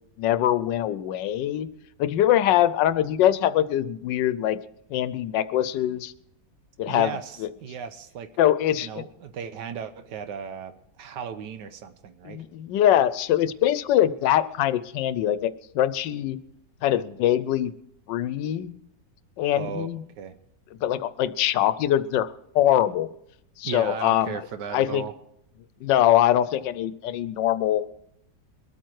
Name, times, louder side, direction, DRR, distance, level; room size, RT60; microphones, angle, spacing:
voice 1, 0.2-1.7 2.0-4.6 4.9-6.1 6.8-7.1 7.4-7.5 8.4-8.9 12.2-16.4 16.8-17.7 18.1-18.7 19.4-20.0 20.8-22.3 22.5-23.1 23.6-24.4 24.7-25.0 25.8-27.9, left 11 dB, 90° left, 15 dB, 1.3 m, -23 dB
voice 2, 6.9-8.3 8.8-12.4 19.4-20.4 23.6-25.1, right 7 dB, 80° right, 9 dB, 1.4 m, -36 dB
22.0 x 9.0 x 4.6 m, 0.78 s
omnidirectional pair, 1.9 m